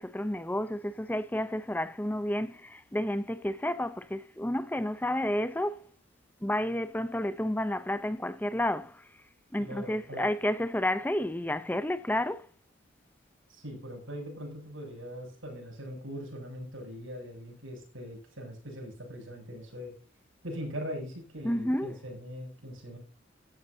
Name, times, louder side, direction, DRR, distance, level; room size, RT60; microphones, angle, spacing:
voice 1, 0.0-5.9 6.4-9.0 9.5-12.5 21.4-21.9, left 1 dB, 10° left, 0.6 m, -31 dB
voice 2, 9.6-10.3 13.5-19.9 20.4-23.0, equal, 85° right, 7.7 m, -41 dB
15.0 x 12.0 x 2.8 m
head